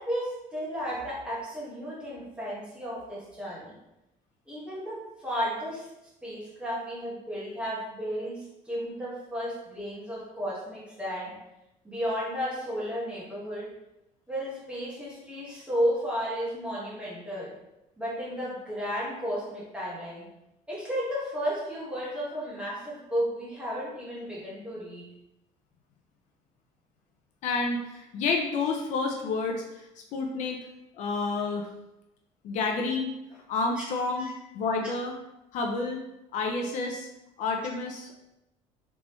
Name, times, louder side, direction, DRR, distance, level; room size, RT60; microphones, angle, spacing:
voice 1, 0.0-3.7 4.5-5.9 6.2-11.3 11.8-13.7 14.3-17.5 18.0-20.3 20.7-25.1 33.8-33.9 34.1-34.3, equal, 5° right, -7 dB, 1.5 m, -33 dB
voice 2, 27.4-30.7 30.9-31.7 32.4-33.2 33.5-34.3 34.5-35.1 35.5-36.0 36.3-37.1 37.4-38.2, left 3 dB, 60° left, 2 dB, 0.5 m, -29 dB
3.9 x 3.4 x 3.1 m, 0.92 s
cardioid pair, 150°, 14 cm